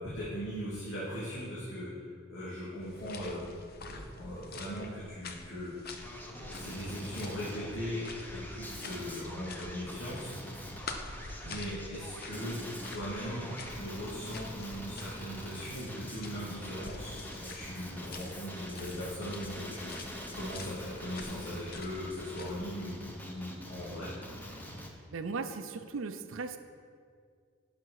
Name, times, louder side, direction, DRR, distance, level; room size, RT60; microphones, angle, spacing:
voice 1, 0.0-3.4 3.8-5.7 6.2-10.3 11.2-12.6 12.8-24.1, equal, 85° left, -9 dB, 2.5 m, -39 dB
sound 1, 2.8-22.7, left 3 dB, 50° left, 0.7 m, -48 dB
Male speech man speaking, 5.9-24.9, equal, 10° left, 0.8 m, -44 dB
voice 2, 25.1-26.6, right 4 dB, 85° right, 8 dB, 0.5 m, -37 dB
11.5 x 5.8 x 4.8 m, 2.1 s
head